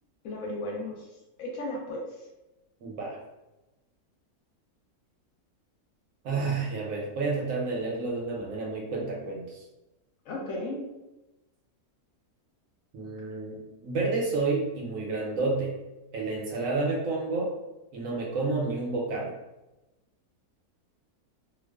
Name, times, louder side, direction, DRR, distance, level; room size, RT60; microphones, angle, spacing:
voice 1, 0.2-1.1 1.4-2.0 10.3-10.9, left 1 dB, 70° left, -2 dB, 0.9 m, -34 dB
voice 2, 2.8-3.2 6.2-9.6 12.9-15.7 16.1-17.5 17.9-19.3, right 3 dB, 70° right, -2 dB, 0.9 m, -30 dB
2.3 x 2.3 x 2.2 m, 1.0 s
omnidirectional pair, 1.6 m